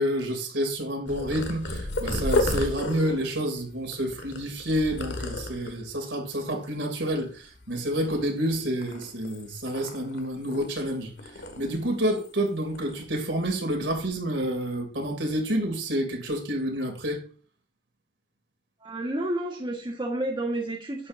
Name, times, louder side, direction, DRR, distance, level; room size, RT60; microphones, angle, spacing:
voice 1, 0.0-11.1 11.6-17.2, equal, 75° right, 2.9 m, -29 dB
Purr, 1.1-5.9 6.5-6.9 7.2-8.4 8.8-10.9 11.2-12.5 12.7-13.0 13.7-14.0, left 2 dB, 65° left, 1.8 m, -33 dB
voice 2, 18.8-21.1, right 1 dB, 25° right, 1.6 m, -30 dB
11.5 x 8.7 x 2.7 m
head